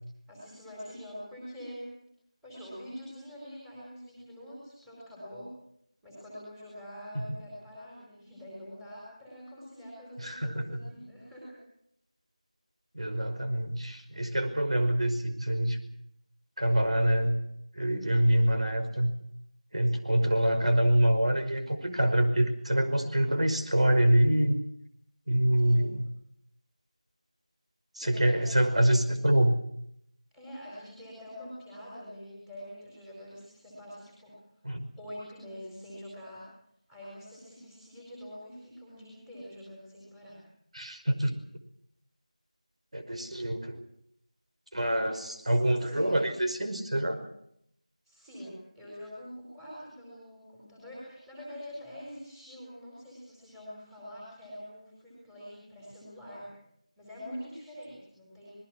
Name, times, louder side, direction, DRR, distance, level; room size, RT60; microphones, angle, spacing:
voice 1, 0.3-2.0 2.4-5.6 6.0-11.6 25.6-26.0 28.0-29.4 30.3-34.4 35.0-36.5 36.9-40.4 45.0-46.3 48.1-56.5 57.0-58.6, equal, ahead, -7 dB, 4.3 m, -45 dB
voice 2, 10.2-10.8 12.9-15.8 16.6-17.4 17.7-19.1 19.7-24.6 25.3-26.0 27.9-29.5 34.6-34.9 40.7-41.3 42.9-43.8 44.7-47.2, right 1 dB, 60° right, 7 dB, 5.3 m, -26 dB
26.5 x 21.0 x 6.1 m, 0.73 s
figure-of-eight pair, 175°, 4 cm